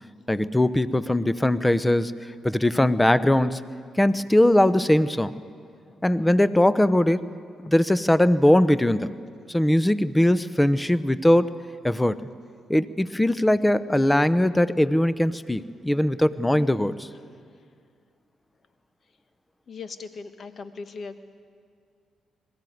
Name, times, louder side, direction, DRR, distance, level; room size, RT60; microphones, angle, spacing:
voice 1, 0.3-2.1 2.4-3.6 4.0-5.3 6.0-7.3 7.6-9.1 9.5-11.5 11.8-12.2 12.7-17.1, left 1 dB, 10° left, 14 dB, 0.8 m, -20 dB
voice 2, 19.7-21.2, left 4 dB, 55° left, 9 dB, 1.4 m, -39 dB
21.0 x 15.0 x 9.4 m, 2.3 s
hypercardioid pair, 50°, 0 cm